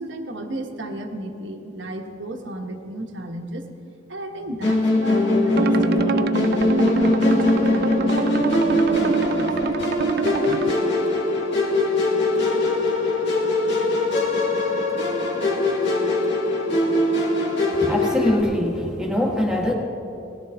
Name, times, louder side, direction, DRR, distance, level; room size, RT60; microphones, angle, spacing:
voice 1, 0.0-3.7 4.1-9.5, right 1 dB, 70° right, 4 dB, 1.3 m, -33 dB
Musical instrument, 4.6-18.4, left 2 dB, 60° left, 2.2 m, -21 dB
sound 1, 5.5-10.7, right 5 dB, 50° right, 0.4 m, -26 dB
voice 2, 17.7-19.7, left 1 dB, 5° right, -1 dB, 1.5 m, -23 dB
19.5 x 14.5 x 3.5 m, 2.8 s
head